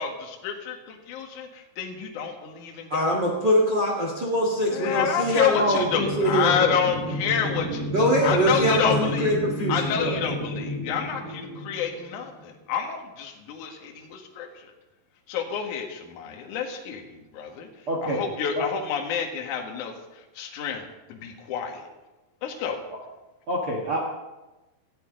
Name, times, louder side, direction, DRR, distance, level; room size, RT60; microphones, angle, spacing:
voice 1, 0.0-3.1 4.7-9.4 9.7-14.7 15.3-17.7 18.0-19.9 20.4-20.8 21.1-21.8 22.4-22.8, left 7 dB, 55° left, 1 dB, 2.5 m, -29 dB
voice 2, 2.9-6.7 7.9-10.1, equal, 40° right, -1 dB, 1.6 m, -23 dB
sound 1, 4.7-12.4, left 1 dB, 20° right, 6.7 m, -32 dB
voice 3, 17.9-18.3 18.6-18.7 22.9-23.0 23.5-24.1, right 1 dB, 70° right, -2 dB, 1.3 m, -27 dB
18.5 x 13.0 x 3.9 m, 1.1 s
omnidirectional pair, 5.3 m